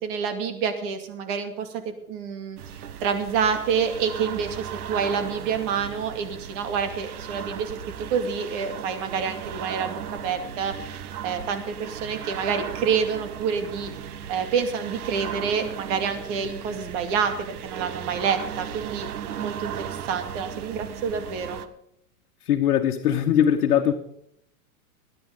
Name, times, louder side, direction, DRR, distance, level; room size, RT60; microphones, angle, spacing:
voice 1, 0.0-10.7 11.2-13.9 14.3-19.1 19.4-21.6, right 6 dB, 55° right, 6 dB, 2.5 m, -28 dB
sound 1, 2.6-21.7, right 9 dB, 80° right, 1.2 m, -36 dB
voice 2, 22.5-23.9, left 9 dB, 75° left, 2 dB, 1.3 m, -21 dB
21.0 x 10.0 x 3.8 m, 0.72 s
hypercardioid pair, 120°, 44 cm